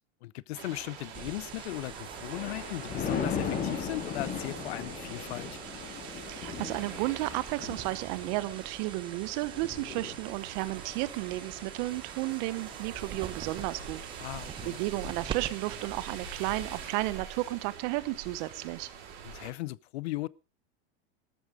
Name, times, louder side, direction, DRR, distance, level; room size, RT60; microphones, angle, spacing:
voice 1, 0.2-5.6 14.2-14.8 19.2-20.3, left 18 dB, 70° left, 0.7 m, -38 dB
sound 1, 0.5-19.5, right 6 dB, 65° right, 6.1 m, -44 dB
sound 2, 1.1-17.1, right 8 dB, 15° right, 0.8 m, -46 dB
Thunder, 1.8-13.3 13.8-14.1, left 7 dB, 25° left, 2.2 m, -38 dB
voice 2, 6.3-14.0 14.6-18.9, right 19 dB, 45° right, 1.0 m, -33 dB
13.5 x 13.0 x 5.0 m
supercardioid pair, 175°, 33 cm